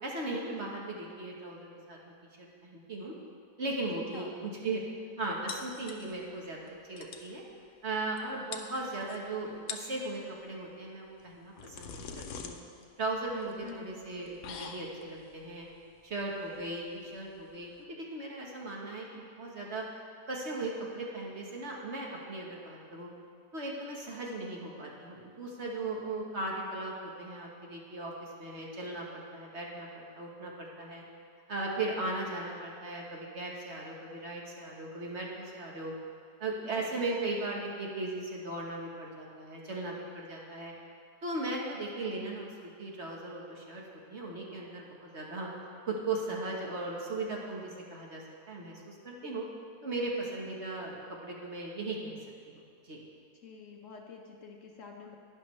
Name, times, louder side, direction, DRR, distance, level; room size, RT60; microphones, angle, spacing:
voice 1, 0.0-2.0 2.4-3.1 3.6-4.8 5.2-7.4 7.8-12.6 13.0-15.7 16.0-19.8 20.3-23.1 23.5-31.0 31.5-35.9 36.4-40.7 41.2-43.8 44.1-45.5 45.8-49.4 49.8-52.2 52.5-53.0, right 2 dB, 45° right, -2 dB, 1.4 m, -37 dB
sound 1, 5.5-6.4 6.7-6.8 7.0-7.3 8.2-8.3 8.5-9.2 9.6-10.0 11.2-17.8, left 6 dB, 85° left, 1.2 m, -45 dB
voice 2, 13.6-14.1 36.7-37.0 53.4-55.2, left 6 dB, 60° left, 2 dB, 0.9 m, -48 dB
11.5 x 10.0 x 3.2 m, 2.2 s
omnidirectional pair, 1.7 m